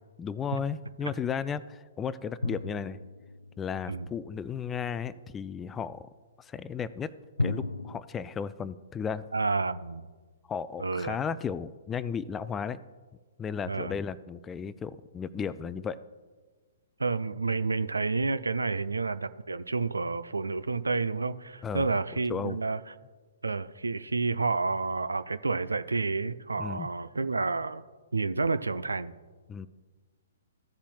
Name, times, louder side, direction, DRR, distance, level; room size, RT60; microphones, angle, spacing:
voice 1, 0.2-3.0 3.6-6.1 6.4-7.1 7.4-9.2 10.5-12.8 13.4-16.0 21.6-21.9 22.3-22.6 26.6-26.9 29.5-29.7, left 7 dB, 15° left, 16 dB, 0.3 m, -34 dB
sound 1, 2.4-4.1 7.4-8.0, left 2 dB, 85° left, 0.4 m, -34 dB
voice 2, 9.3-10.1 10.8-11.2 13.7-13.9 17.0-22.9 23.4-27.8 28.1-29.1, right 3 dB, 80° right, 13 dB, 0.4 m, -30 dB
15.0 x 7.1 x 2.3 m, 1.4 s
figure-of-eight pair, 120°, 0 cm